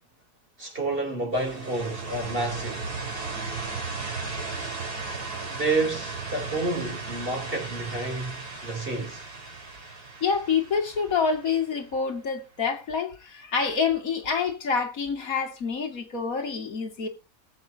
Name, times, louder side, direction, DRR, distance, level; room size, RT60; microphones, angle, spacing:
voice 1, 0.6-2.9 5.5-9.2, right 2 dB, 35° right, 3.8 m, -29 dB
sound 1, 1.3-12.0, right 4 dB, 70° right, 5.0 m, -36 dB
voice 2, 10.2-17.1, left 5 dB, 60° left, 2.5 m, -27 dB
19.5 x 7.9 x 2.8 m
omnidirectional pair, 1.7 m